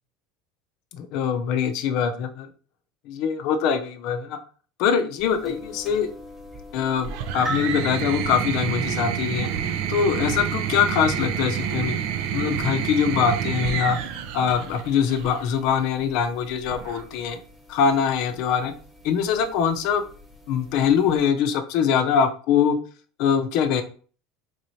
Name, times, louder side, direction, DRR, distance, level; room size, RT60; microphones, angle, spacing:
voice 1, 0.9-2.5 3.1-4.4 4.8-6.1 6.7-9.5 9.9-12.0 12.3-14.0 14.3-17.4 17.7-18.7 19.0-20.0 20.5-22.8 23.2-23.8, left 7 dB, 65° left, 8 dB, 0.5 m, -23 dB
sound 1, 5.2-21.3, right 1 dB, ahead, 0.9 m, -44 dB
sound 2, 7.0-15.4 16.6-17.3, right 9 dB, 65° right, 0.4 m, -28 dB
4.0 x 3.1 x 2.7 m, 0.41 s
supercardioid pair, 130°, 0 cm